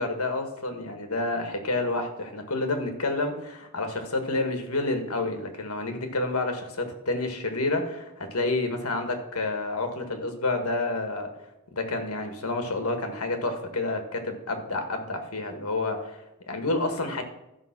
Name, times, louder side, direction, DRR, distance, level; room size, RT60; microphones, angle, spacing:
voice 1, 0.0-11.3 11.7-16.2 16.5-17.2, left 2 dB, 85° left, 6 dB, 1.6 m, -29 dB
13.0 x 5.4 x 5.9 m, 0.92 s
head